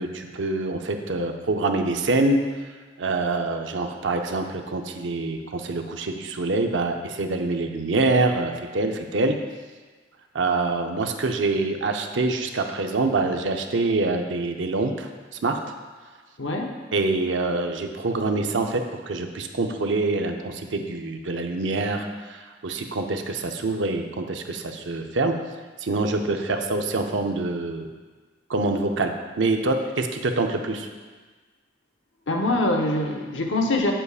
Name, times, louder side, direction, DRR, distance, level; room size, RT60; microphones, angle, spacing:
voice 1, 0.0-2.4 3.0-9.4 10.3-15.1 15.4-15.6 16.9-22.4 22.6-25.4 25.8-27.9 28.5-30.9, right 3 dB, 85° right, 5 dB, 0.6 m, -25 dB
voice 2, 16.4-16.8 32.3-33.9, left 2 dB, 85° left, 1 dB, 0.9 m, -24 dB
8.1 x 7.6 x 2.4 m, 1.4 s
head